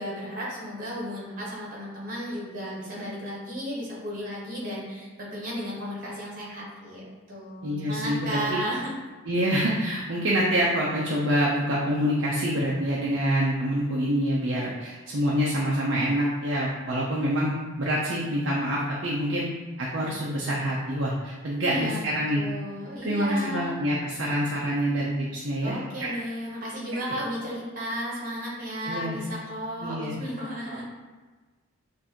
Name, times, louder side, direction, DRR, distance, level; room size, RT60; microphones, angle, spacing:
voice 1, 0.0-9.0 21.6-23.7 25.6-30.9, equal, 40° right, -5 dB, 1.3 m, -34 dB
voice 2, 7.6-8.6 9.3-19.5 19.8-22.4 23.0-26.1 28.8-29.2 29.8-30.2 30.7-30.9, equal, 55° right, -5 dB, 0.6 m, -26 dB
6.4 x 2.6 x 2.9 m, 1.3 s
head